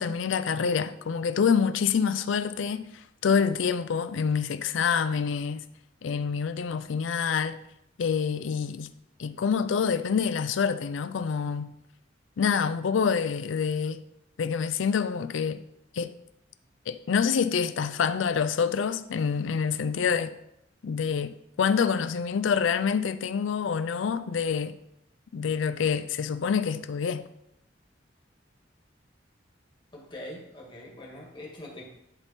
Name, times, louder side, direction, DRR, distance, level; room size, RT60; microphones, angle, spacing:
voice 1, 0.0-5.6 6.0-7.6 8.0-8.9 9.2-11.7 12.4-14.0 14.4-15.6 15.9-16.1 16.9-20.3 20.8-24.8 25.3-27.3, left 6 dB, 80° left, 0.4 m, -27 dB
voice 2, 29.9-31.8, left 1 dB, 25° left, 1.8 m, -43 dB
10.5 x 3.6 x 4.2 m
head